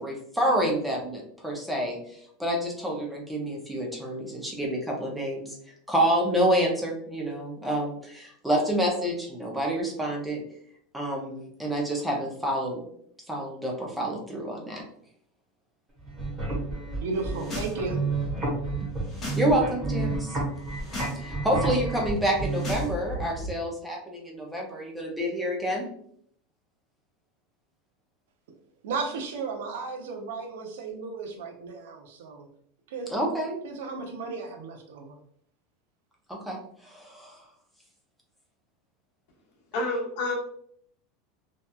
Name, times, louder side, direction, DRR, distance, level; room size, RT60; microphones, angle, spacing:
voice 1, 0.0-5.6 5.9-10.4 10.9-12.8 13.3-14.8 19.3-20.3 21.2-25.8 33.1-33.6 36.3-37.4, right 1 dB, 5° right, -1 dB, 0.4 m, -28 dB
sound 1, 16.0-22.7, right 3 dB, 20° right, 1.0 m, -31 dB
voice 2, 17.0-18.1 28.8-32.5 32.9-33.1 33.6-35.2, right 4 dB, 90° right, 3 dB, 0.5 m, -34 dB
sound 2, 17.2-17.7 18.0-19.5 19.7-20.1 20.6-21.2 21.4-23.5, equal, 15° left, 1.1 m, -37 dB
voice 3, 39.7-40.3, left 2 dB, 55° left, -2 dB, 0.8 m, -28 dB
2.8 x 2.2 x 2.2 m, 0.66 s
supercardioid pair, 180°, 0 cm